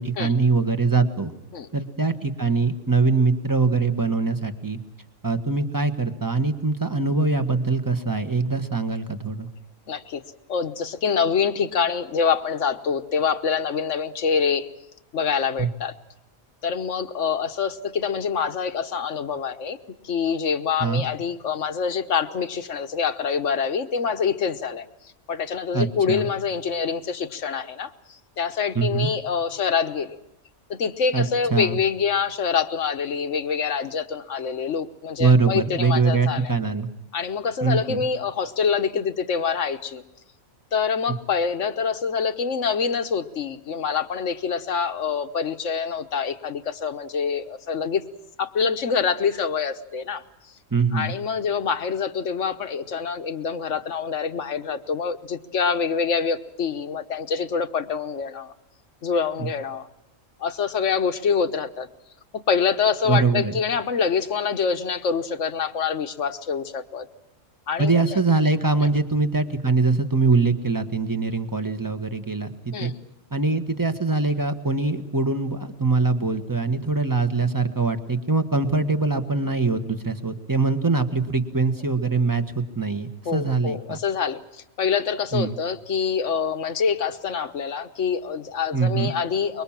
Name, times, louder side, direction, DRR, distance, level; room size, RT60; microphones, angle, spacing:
voice 1, 0.0-1.3 1.7-4.8 5.2-9.5 15.6-15.7 20.8-21.0 25.7-26.3 28.7-29.1 31.1-31.2 31.5-31.8 35.2-36.9 37.6-38.0 50.7-51.1 59.4-59.5 63.1-63.6 67.8-72.9 73.3-84.0 85.3-85.5 88.7-89.1, right 4 dB, 15° right, 8 dB, 1.4 m, -23 dB
voice 2, 9.9-10.2 10.5-14.7 15.1-15.9 16.6-19.8 20.0-24.9 25.3-30.2 30.7-36.5 37.1-40.0 40.7-48.0 48.4-50.2 50.9-58.5 59.0-59.9 60.4-61.9 62.3-67.1 67.7-68.2 72.7-72.9 83.2-89.6, left 6 dB, 70° left, 9 dB, 1.5 m, -25 dB
25.0 x 23.0 x 7.4 m, 0.84 s
omnidirectional pair, 1.4 m